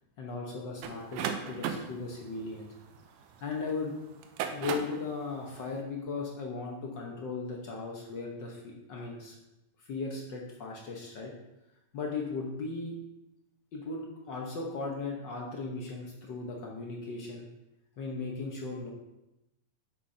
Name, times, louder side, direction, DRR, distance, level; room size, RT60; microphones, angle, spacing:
voice 1, 0.2-2.7 3.4-4.0 4.5-9.3 9.8-11.3 11.9-13.0 13.7-17.5 18.0-18.9, left 4 dB, 70° left, -1 dB, 1.0 m, -37 dB
sound 1, 0.8-3.5 4.2-5.1, right 7 dB, 90° right, 2.2 m, -36 dB
10.5 x 7.8 x 2.7 m, 0.91 s
omnidirectional pair, 3.6 m